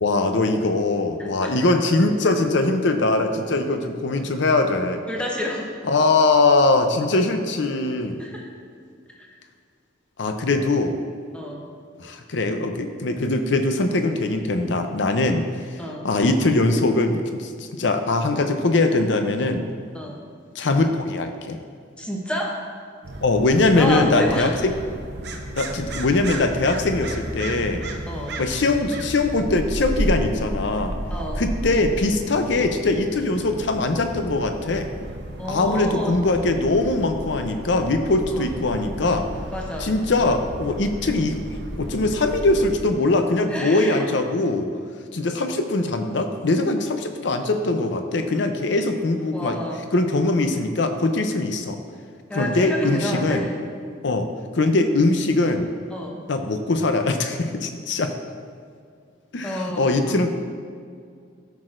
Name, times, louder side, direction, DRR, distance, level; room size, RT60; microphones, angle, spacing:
voice 1, 0.0-5.0 5.8-8.2 10.2-11.0 12.0-15.4 16.0-19.7 20.6-21.6 23.2-24.7 25.6-27.8 28.4-31.0 31.4-34.9 35.4-39.3 39.8-44.7 45.1-49.6 49.9-51.8 52.3-53.5 54.0-54.3 54.5-55.7 56.3-58.1 59.3-60.3, left 2 dB, 60° left, 7 dB, 0.6 m, -21 dB
voice 2, 5.1-5.7 8.2-8.5 9.2-9.3 11.3-11.7 15.8-16.1 19.9-20.2 22.0-22.6 23.7-24.5 28.1-28.4 31.1-31.5 35.4-36.1 38.3-38.5 39.5-40.0 43.5-44.1 49.3-49.8 52.3-53.5 55.9-56.3 59.4-60.0, equal, 5° left, -2 dB, 0.9 m, -29 dB
sound 1, 23.0-42.9, right 1 dB, 55° right, 0.7 m, -33 dB
12.5 x 6.2 x 2.6 m, 2.2 s
head